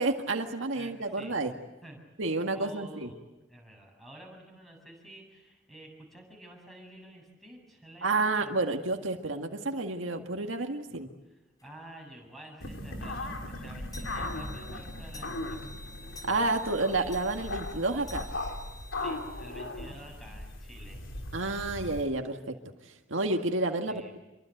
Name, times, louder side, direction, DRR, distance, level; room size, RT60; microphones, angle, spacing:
voice 1, 0.0-1.5 2.2-3.1 8.0-11.1 16.3-18.3 21.3-22.5 22.8-24.2, right 2 dB, 80° right, 4 dB, 1.9 m, -30 dB
voice 2, 0.7-1.4 1.8-2.0 2.5-3.2 3.5-8.6 11.3-15.6 19.0-21.0 23.9-24.1, right 1 dB, ahead, 1 dB, 7.6 m, -50 dB
sound 1, 11.6-11.7 12.2-12.3 12.6-12.7 13.1-19.5, left 1 dB, 20° left, 5.7 m, -51 dB
sound 2, 12.6-22.0, left 2 dB, 75° left, 3.6 m, -38 dB
27.0 x 23.5 x 8.0 m, 1.0 s
head